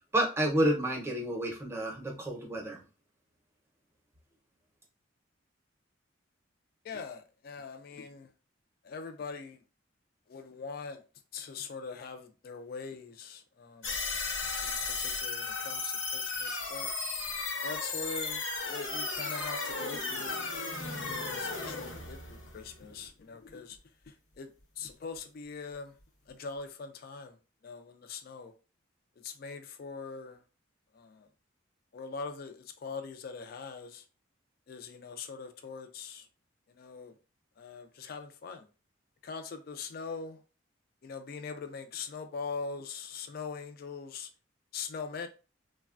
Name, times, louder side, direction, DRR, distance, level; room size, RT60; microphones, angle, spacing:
voice 1, 0.0-2.8, right 1 dB, 15° right, 0.6 m, -30 dB
voice 2, 6.8-8.3 8.8-9.6 10.3-11.0 11.3-14.0 14.6-16.9 17.6-20.5 21.0-23.8 24.1-24.5 24.8-26.0 26.3-27.4 27.6-28.5 29.2-30.4 30.9-31.3 31.9-34.0 34.7-36.3 36.7-37.2 37.6-38.7 39.2-40.4 41.0-44.3 44.7-45.3, left 5 dB, 50° left, 0.3 m, -42 dB
sound 1, 13.8-23.1, left 4 dB, 80° left, 0.9 m, -35 dB
3.1 x 2.1 x 2.4 m
head